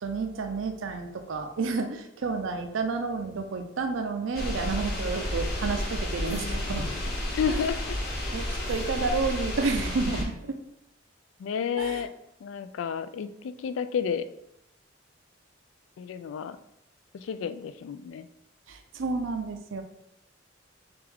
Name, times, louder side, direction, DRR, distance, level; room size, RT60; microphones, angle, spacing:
voice 1, 0.0-6.9 7.5-7.6 8.3-10.6 11.8-12.0 18.7-19.8, right 4 dB, 75° right, 5 dB, 0.5 m, -30 dB
sound 1, 4.3-10.2, left 1 dB, 55° left, 1.0 m, -31 dB
voice 2, 6.3-7.8 11.4-12.1 12.4-14.3 16.0-16.6 17.1-18.3, left 7 dB, 80° left, 12 dB, 0.3 m, -31 dB
3.5 x 3.4 x 3.5 m, 0.79 s
head